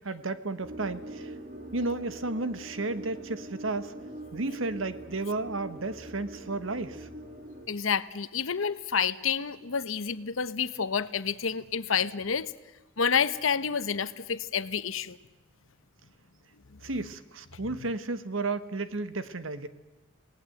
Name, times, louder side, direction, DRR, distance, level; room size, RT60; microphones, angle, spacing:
voice 1, 0.0-1.3 1.7-3.9 4.3-7.1 16.8-19.7, right 2 dB, 80° right, 1.3 m, -33 dB
sound 1, 0.6-7.7, right 1 dB, 45° right, 2.9 m, -43 dB
voice 2, 7.7-12.5 13.0-15.2 17.6-17.8, left 6 dB, 85° left, 0.9 m, -29 dB
28.0 x 19.0 x 7.9 m
head